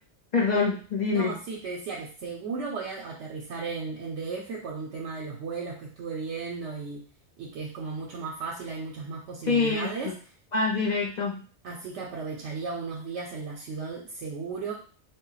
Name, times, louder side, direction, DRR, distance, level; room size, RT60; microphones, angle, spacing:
voice 1, 0.3-1.4 9.5-9.9 10.5-11.4, left 4 dB, 50° left, -3 dB, 0.6 m, -25 dB
voice 2, 1.1-7.0 7.4-10.1 11.6-14.7, right 4 dB, 80° right, -2 dB, 0.9 m, -35 dB
2.2 x 2.0 x 3.8 m, 0.41 s
omnidirectional pair, 1.2 m